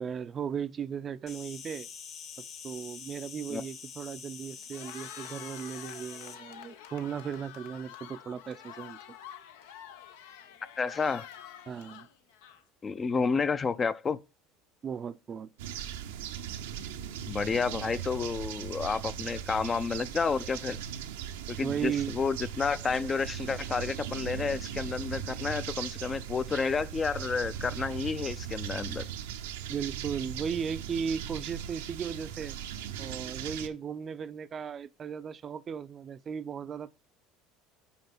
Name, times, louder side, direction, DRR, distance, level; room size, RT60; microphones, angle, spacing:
voice 1, 0.0-1.9 2.4-9.2 11.7-12.1 14.8-15.5 21.6-22.1 29.7-32.6 33.0-36.9, right 7 dB, 35° right, 0.5 m, -36 dB
Insect, 1.3-6.4, left 7 dB, 55° left, 1.6 m, -45 dB
Cheering, 4.6-12.9, left 9 dB, 80° left, 0.8 m, -48 dB
voice 2, 10.8-11.3 12.8-14.2 17.3-20.8 21.5-29.0, left 5 dB, 30° left, 0.5 m, -30 dB
sound 1, 15.6-33.7, right 9 dB, 85° right, 0.7 m, -38 dB
5.5 x 4.9 x 6.0 m
hypercardioid pair, 85°, 0 cm